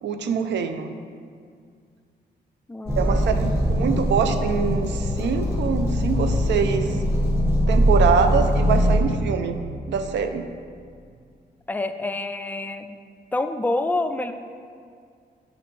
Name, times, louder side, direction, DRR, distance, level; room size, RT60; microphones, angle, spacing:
voice 1, 0.0-0.9 3.0-6.9 7.7-9.6 9.9-10.5, right 6 dB, 85° right, 8 dB, 0.4 m, -24 dB
voice 2, 2.7-3.5 11.7-13.0 13.3-14.3, left 2 dB, 10° left, 8 dB, 0.3 m, -27 dB
sound 1, 2.9-9.0, equal, 15° right, 1.3 m, -21 dB
6.5 x 5.1 x 3.2 m, 2.2 s
cardioid pair, 75°, 18 cm